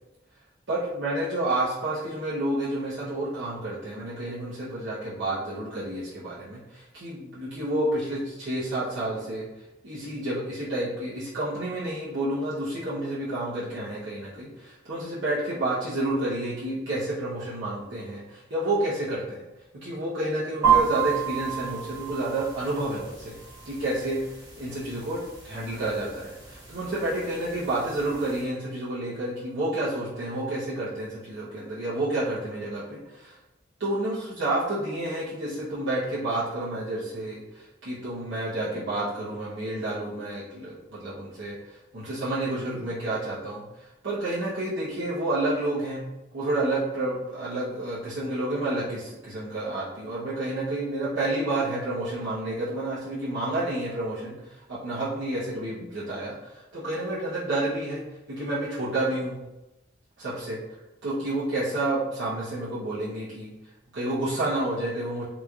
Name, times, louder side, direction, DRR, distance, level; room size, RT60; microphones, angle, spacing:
voice 1, 0.7-9.5 9.8-19.4 19.7-23.4 23.6-25.2 25.4-33.4 33.8-46.0 46.3-58.0 58.3-59.4 60.2-60.6 61.0-63.5 63.9-65.2, right 1 dB, 80° right, -10 dB, 0.9 m, -30 dB
sound 1, 20.6-28.4, right 8 dB, 20° right, 1.3 m, -31 dB
3.9 x 3.1 x 2.4 m, 0.99 s
head